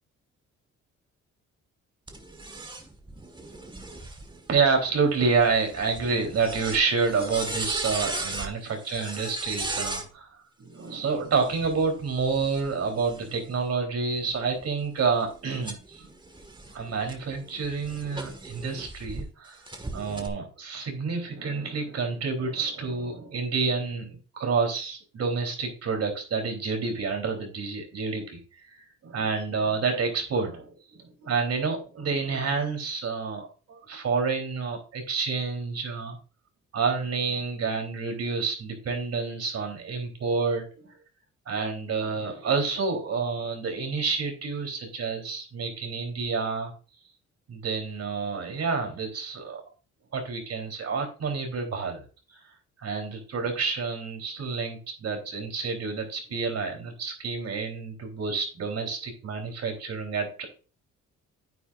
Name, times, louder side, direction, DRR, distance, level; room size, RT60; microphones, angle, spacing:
sound 1, 2.1-10.1 11.2-13.6 14.2-19.2 19.7-20.3, right 2 dB, 15° right, 1.7 m, -38 dB
voice 1, 4.5-10.3 10.6-16.1 16.7-19.6 19.9-28.4 28.6-36.2 36.7-40.9 41.5-46.7 47.5-49.6 50.1-52.1 52.3-52.4 52.8-60.5, right 4 dB, 55° right, 3 dB, 3.6 m, -29 dB
9.8 x 8.8 x 2.5 m, 0.34 s
cardioid pair, 90°, 30 cm